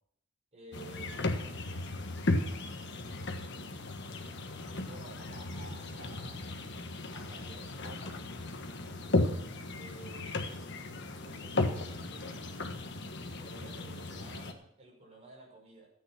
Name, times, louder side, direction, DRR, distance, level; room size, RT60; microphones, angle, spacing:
voice 1, 0.5-1.8 4.8-6.4 7.1-8.2 9.7-10.6 11.2-12.5 13.4-15.9, right 2 dB, 30° right, -2 dB, 6.1 m, -52 dB
sound 1, 0.7-14.5, left 2 dB, 55° left, 1.4 m, -35 dB
14.0 x 9.1 x 5.9 m, 0.72 s
head